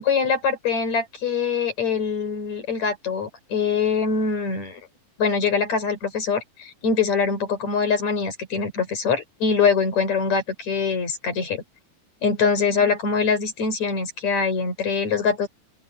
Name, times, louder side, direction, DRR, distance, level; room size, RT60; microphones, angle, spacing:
voice 1, 0.1-4.8 5.2-11.6 12.2-15.5, left 5 dB, 50° left, 5.8 m, -23 dB
open air
omnidirectional pair, 4.2 m